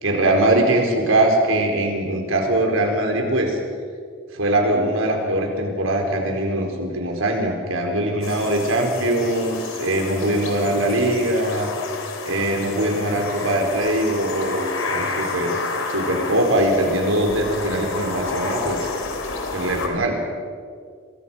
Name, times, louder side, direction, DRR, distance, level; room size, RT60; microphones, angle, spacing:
voice 1, 0.0-3.6 4.3-11.7 12.2-15.6 15.9-18.9 19.5-20.2, right 1 dB, 85° right, 2 dB, 4.5 m, -21 dB
sound 1, 8.2-19.9, left 3 dB, 85° left, 3.5 m, -30 dB
26.5 x 22.5 x 5.7 m, 2.1 s
head